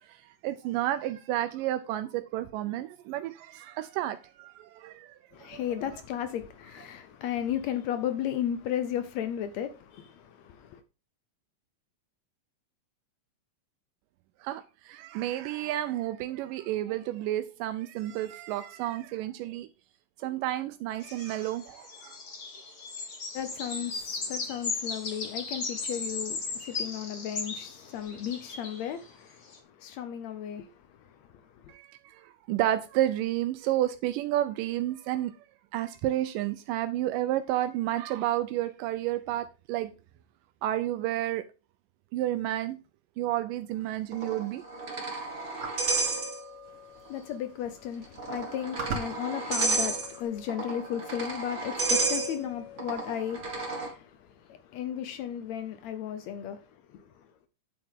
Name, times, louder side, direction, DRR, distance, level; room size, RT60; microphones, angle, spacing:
voice 1, 0.4-5.5 14.4-19.7 20.2-22.2 31.7-35.3 35.7-39.9 40.6-41.5 42.1-42.8 43.2-44.6, right 13 dB, 80° right, 2.2 m, -31 dB
voice 2, 5.3-10.8 23.3-31.7 46.7-57.3, left 10 dB, 75° left, 1.6 m, -35 dB
sound 1, 21.0-28.9 29.5-29.6, left 4 dB, 40° left, 1.5 m, -37 dB
sound 2, 44.1-46.8 47.1-47.2 48.0-53.9, right 3 dB, 25° right, 1.9 m, -32 dB
sound 3, 45.6-46.0 47.1-47.2 47.5-47.8 48.4-50.2, right 4 dB, 50° right, 3.0 m, -38 dB
9.3 x 7.7 x 3.6 m
omnidirectional pair, 3.9 m